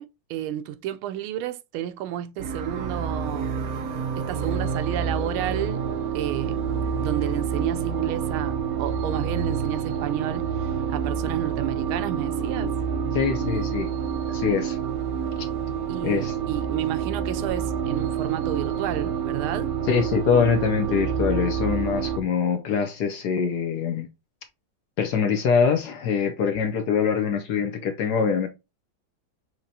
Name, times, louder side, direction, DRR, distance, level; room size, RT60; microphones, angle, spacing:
voice 1, 0.0-3.5 4.2-5.8 6.1-6.6 7.0-12.7 15.9-19.7, right 12 dB, 85° right, 1.4 m, -31 dB
sound 1, 2.4-22.2, right 7 dB, 60° right, 1.0 m, -28 dB
voice 2, 13.1-13.9 14.3-14.8 16.0-16.4 19.9-24.1 25.0-28.5, left 6 dB, 70° left, 1.0 m, -24 dB
6.4 x 2.9 x 2.7 m
omnidirectional pair, 2.3 m